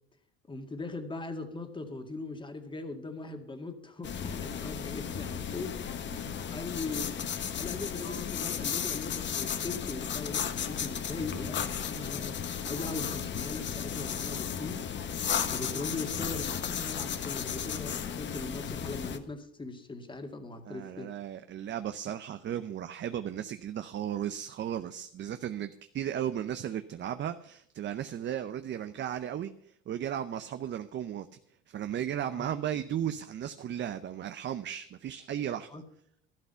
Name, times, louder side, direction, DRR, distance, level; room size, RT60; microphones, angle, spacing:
voice 1, 0.5-7.2 7.6-12.4 12.6-14.8 15.5-21.1 32.3-32.5 35.7-35.8, left 3 dB, 15° left, 6 dB, 2.0 m, -40 dB
sound 1, 4.0-19.2, left 8 dB, 35° left, 1.2 m, -34 dB
voice 2, 20.7-31.3 31.7-35.8, right 10 dB, 35° right, 10 dB, 0.7 m, -35 dB
12.5 x 12.0 x 5.6 m, 0.69 s
cardioid pair, 115°, 31 cm